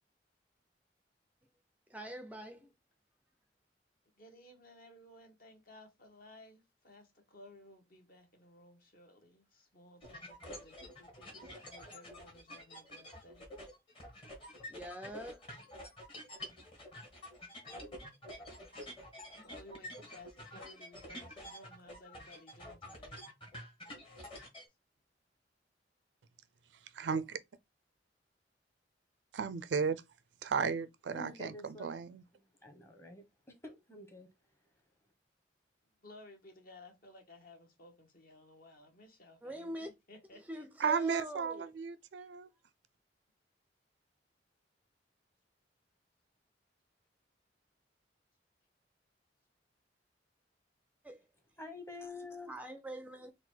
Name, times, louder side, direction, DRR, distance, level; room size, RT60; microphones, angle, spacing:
voice 1, 1.9-2.7 14.7-15.5 39.4-39.9 40.3-41.6 51.0-51.2 52.5-53.3, right 1 dB, 10° right, 0.4 m, -44 dB
voice 2, 4.2-13.5 19.4-23.2 36.0-40.7, left 1 dB, 55° left, 1.1 m, -57 dB
sound 1, 10.0-24.7, left 1 dB, 30° left, 1.2 m, -49 dB
voice 3, 27.0-27.4 29.3-30.0 30.4-32.2 40.8-42.5, right 6 dB, 80° right, 0.5 m, -34 dB
voice 4, 31.1-31.9 32.6-34.3 51.6-52.5, left 2 dB, 15° left, 0.9 m, -48 dB
3.9 x 2.1 x 4.4 m
head